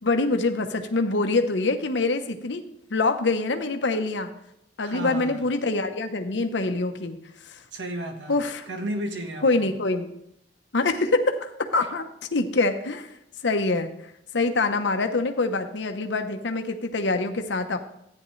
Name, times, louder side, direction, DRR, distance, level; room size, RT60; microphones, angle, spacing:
voice 1, 0.0-2.6 2.9-4.3 4.8-7.2 7.4-7.6 8.3-8.7 9.4-10.1 10.7-13.1 13.4-13.9 14.3-17.8, left 3 dB, 80° left, 0.9 m, -25 dB
voice 2, 4.8-5.4 7.7-8.4 8.7-9.7, right 1 dB, 80° right, 1.4 m, -33 dB
13.5 x 9.5 x 3.2 m
head